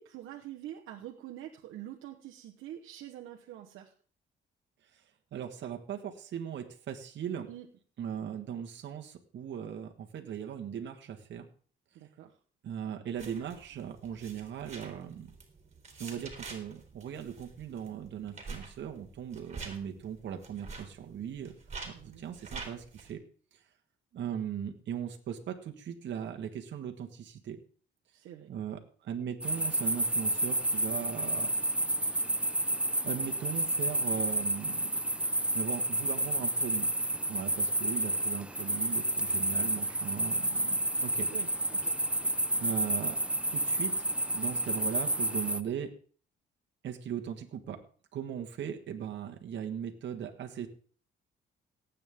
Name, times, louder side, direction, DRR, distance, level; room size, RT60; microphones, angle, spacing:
voice 1, 0.0-3.9 7.5-7.7 11.9-12.4 21.9-22.3 28.1-28.5 41.3-41.9, right 12 dB, 85° right, 1 dB, 1.2 m, -46 dB
voice 2, 5.3-7.5 8.0-11.4 12.6-15.3 16.0-21.5 21.8-23.2 24.1-27.6 28.5-31.5 33.0-34.9 35.5-36.9 37.3-41.3 42.6-43.2 43.5-43.9 44.3-45.9 46.8-47.8 48.1-50.7, right 8 dB, 65° right, 3 dB, 1.5 m, -38 dB
sound 1, 13.1-23.1, right 4 dB, 35° right, 3.3 m, -47 dB
sound 2, 29.4-45.6, right 1 dB, 5° right, 0.7 m, -30 dB
18.5 x 8.5 x 3.6 m, 0.43 s
cardioid pair, 90°, 20 cm